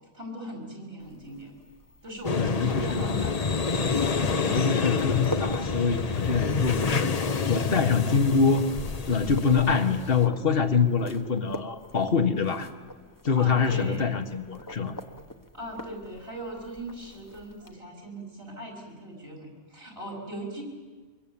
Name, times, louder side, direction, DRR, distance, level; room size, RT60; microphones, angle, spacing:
voice 1, 0.1-1.5 2.0-3.4 13.3-14.1 15.5-20.6, right 1 dB, 70° right, 0 dB, 5.9 m, -40 dB
sound 1, 1.0-17.7, left 1 dB, 20° left, 1.1 m, -44 dB
sound 2, 2.2-10.3, left 4 dB, 40° left, 0.9 m, -28 dB
voice 2, 2.4-3.3 4.3-7.1 7.5-8.6 9.1-12.7 13.2-15.0, left 5 dB, 65° left, 8 dB, 1.7 m, -25 dB
24.5 x 22.0 x 8.8 m, 1.4 s
omnidirectional pair, 1.1 m